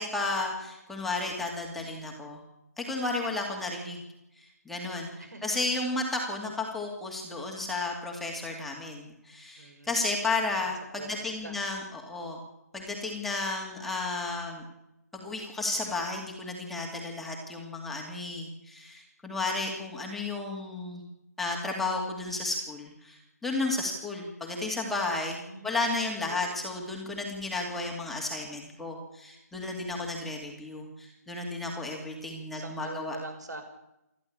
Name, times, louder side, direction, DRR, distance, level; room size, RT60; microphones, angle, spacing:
voice 1, 0.0-2.4 2.8-4.0 4.4-12.4 12.7-14.6 15.1-21.0 21.4-33.2, left 2 dB, ahead, -1 dB, 2.5 m, -33 dB
voice 2, 5.2-5.6 9.6-9.9 10.6-11.6 25.3-26.5 31.7-33.6, right 2 dB, 80° right, 7 dB, 6.3 m, -44 dB
28.0 x 11.5 x 8.7 m, 0.87 s
hypercardioid pair, 165°, 9 cm